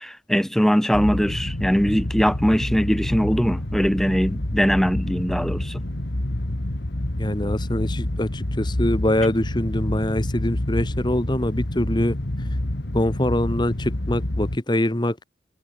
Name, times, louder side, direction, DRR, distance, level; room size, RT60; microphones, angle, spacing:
voice 1, 0.0-5.8, equal, ahead, 1.8 m, -21 dB
sound 1, 0.9-14.6, left 1 dB, 60° left, 1.9 m, -28 dB
voice 2, 7.2-12.2 12.9-15.2, left 1 dB, 20° left, 1.4 m, -24 dB
head